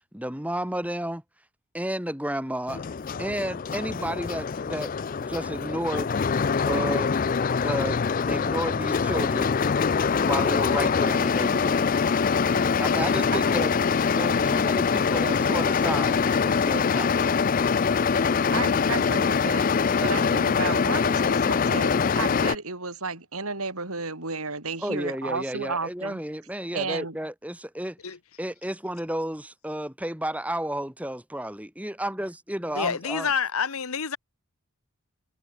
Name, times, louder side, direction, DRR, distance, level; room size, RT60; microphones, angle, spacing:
voice 1, 0.1-1.2 1.7-2.9 3.2-4.9 5.2-6.1 6.7-7.1 7.6-9.5 10.2-11.9 12.8-13.7 14.1-17.3 24.8-28.0 28.4-33.3, right 1 dB, 5° right, 3.0 m, -32 dB
sound 1, 2.7-22.6, left 5 dB, 40° left, 0.4 m, -24 dB
voice 2, 18.5-26.2 26.7-27.2, right 3 dB, 85° right, 6.7 m, -32 dB
voice 3, 32.7-34.2, left 6 dB, 80° left, 1.2 m, -27 dB
head